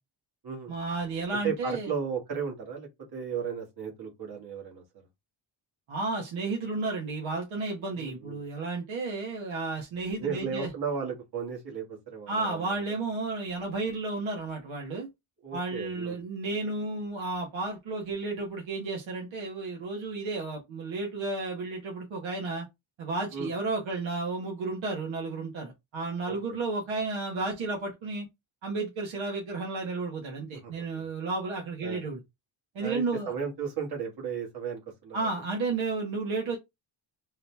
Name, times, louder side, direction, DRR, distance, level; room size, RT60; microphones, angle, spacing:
voice 1, 0.7-1.9 5.9-10.7 12.3-15.1 15.5-22.7 23.0-28.3 28.6-32.2 32.7-33.3 35.1-36.6, right 3 dB, 75° right, 1.3 m, -32 dB
voice 2, 1.4-4.8 7.9-8.4 10.2-12.7 15.4-16.2 23.3-23.5 26.3-26.4 30.6-31.0 31.8-32.0 32.8-35.3, right 6 dB, 50° right, 1.8 m, -35 dB
3.9 x 2.9 x 3.3 m
wide cardioid pair, 180°, 48 cm